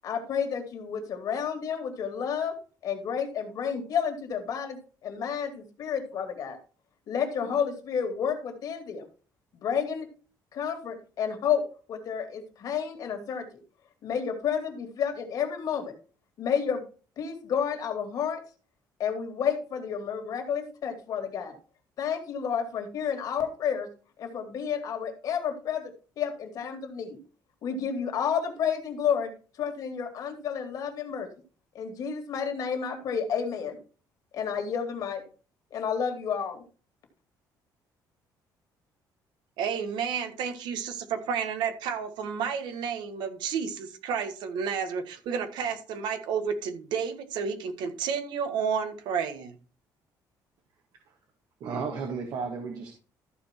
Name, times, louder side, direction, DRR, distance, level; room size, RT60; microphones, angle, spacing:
voice 1, 0.0-2.6 2.8-6.6 7.1-9.0 9.5-10.1 10.5-11.6 11.9-13.4 14.0-15.9 16.4-16.8 17.2-18.4 19.0-21.5 22.0-23.9 24.2-27.2 27.6-29.3 29.6-31.3 31.7-33.8 34.3-35.2 35.7-36.6, left 7 dB, 50° left, 2.5 m, -30 dB
voice 2, 39.6-49.6, right 6 dB, 80° right, 1.6 m, -31 dB
voice 3, 51.6-52.9, right 5 dB, 60° right, 1.8 m, -33 dB
14.0 x 4.8 x 4.5 m
cardioid pair, 160°, 8 cm